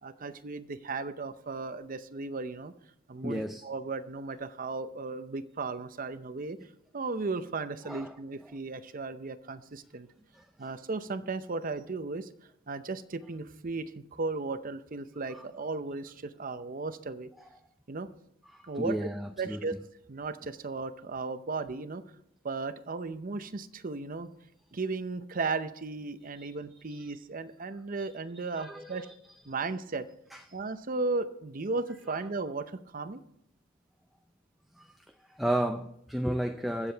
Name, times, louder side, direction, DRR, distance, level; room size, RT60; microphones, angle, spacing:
voice 1, 0.0-2.7 3.1-6.6 6.9-10.1 10.6-12.3 12.7-17.3 17.9-18.1 18.7-18.9 19.4-19.7 20.1-22.0 22.4-24.3 24.7-29.1 29.4-30.1 30.5-33.2, right 3 dB, 40° right, 12 dB, 0.6 m, -35 dB
voice 2, 3.2-3.6 7.8-8.1 10.3-10.4 18.5-19.6 26.3-26.5 26.9-27.1 28.6-29.1 30.3-30.4 34.8-34.9 35.3-36.9, right 1 dB, ahead, 5 dB, 0.4 m, -33 dB
22.0 x 7.4 x 3.4 m, 0.75 s
head